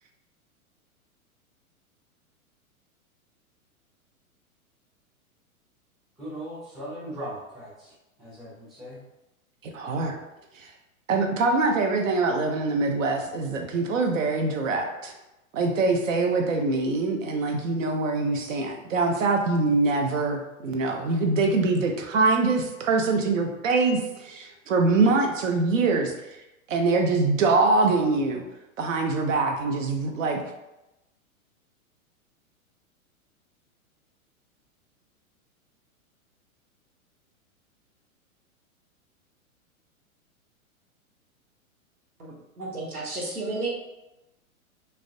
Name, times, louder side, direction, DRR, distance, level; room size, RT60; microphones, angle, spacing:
voice 1, 6.2-7.7 8.2-9.0, right 1 dB, ahead, -11 dB, 0.5 m, -38 dB
voice 2, 9.6-10.1 10.5-10.7 11.1-15.1 15.5-26.1 26.7-28.4 28.8-30.4, right 3 dB, 65° right, 3 dB, 0.6 m, -24 dB
voice 3, 42.2-43.7, right 2 dB, 90° right, -3 dB, 0.8 m, -32 dB
2.3 x 2.1 x 2.5 m, 0.96 s
figure-of-eight pair, 105°, 43 cm